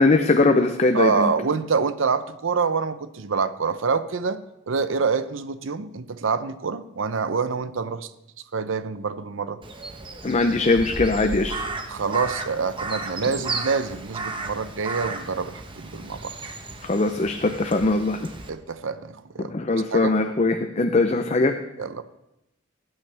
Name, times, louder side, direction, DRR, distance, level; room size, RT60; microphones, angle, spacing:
voice 1, 0.0-1.3 10.2-11.5 16.8-18.2 19.5-21.5, left 3 dB, 35° left, 6 dB, 0.6 m, -21 dB
voice 2, 0.9-8.1 8.5-9.6 11.9-16.3 18.5-19.5 19.9-20.1 21.8-22.0, right 5 dB, 75° right, 13 dB, 0.6 m, -26 dB
Crow, 9.6-18.5, right 3 dB, 25° right, 1.0 m, -34 dB
19.5 x 8.9 x 3.4 m, 0.89 s
head